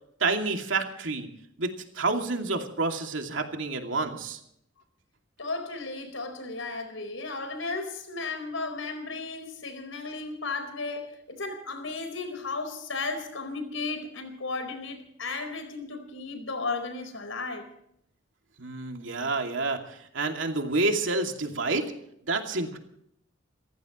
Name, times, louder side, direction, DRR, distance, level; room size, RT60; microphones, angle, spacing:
voice 1, 0.2-1.3 1.6-4.4 18.6-21.9 22.3-22.8, right 3 dB, 75° right, 4 dB, 2.5 m, -29 dB
voice 2, 5.4-17.7, left 3 dB, 90° left, 8 dB, 4.5 m, -34 dB
28.5 x 15.0 x 3.1 m, 0.74 s
head